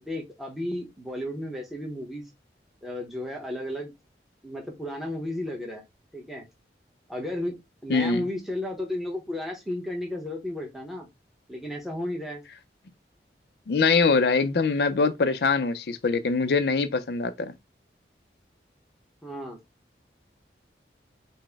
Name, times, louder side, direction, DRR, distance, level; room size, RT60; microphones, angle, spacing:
voice 1, 0.1-2.2 2.8-3.9 4.4-5.8 6.1-6.4 7.1-7.6 7.8-11.1 11.5-12.4 19.2-19.6, left 1 dB, ahead, 0.8 m, -33 dB
voice 2, 7.9-8.3 13.7-17.5, left 4 dB, 65° left, 0.4 m, -23 dB
4.0 x 2.1 x 3.4 m
head